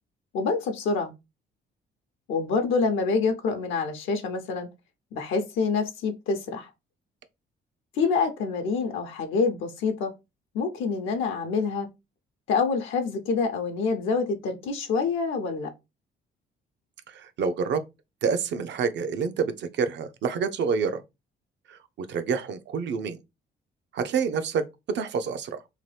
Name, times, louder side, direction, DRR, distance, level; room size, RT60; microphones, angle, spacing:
voice 1, 0.3-1.1 2.3-4.7 5.1-6.7 7.9-10.1 10.5-11.9 12.5-15.7, left 4 dB, 80° left, 0.6 m, -26 dB
voice 2, 17.1-17.8 18.2-21.0 22.0-23.2 23.9-24.6 24.9-25.6, right 6 dB, 65° right, 0.5 m, -27 dB
2.9 x 2.2 x 3.2 m
cardioid pair, 90°, 20 cm